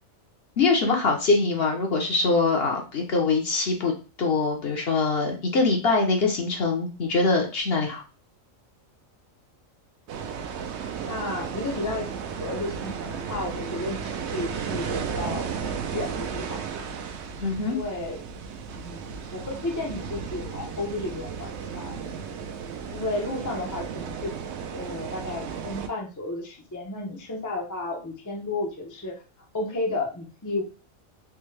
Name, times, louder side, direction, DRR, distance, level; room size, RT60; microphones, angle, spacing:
voice 1, 0.6-3.9 4.2-8.0 17.4-17.8, left 3 dB, 55° left, 1 dB, 0.9 m, -23 dB
sound 1, 10.1-25.9, right 6 dB, 65° right, 0.8 m, -34 dB
voice 2, 11.0-12.1 12.4-15.5 15.9-16.8 17.7-18.2 18.7-22.1 22.9-24.3 24.7-29.2 29.5-30.6, left 2 dB, 20° left, 0 dB, 0.4 m, -32 dB
3.5 x 2.6 x 3.2 m, 0.34 s
omnidirectional pair, 1.4 m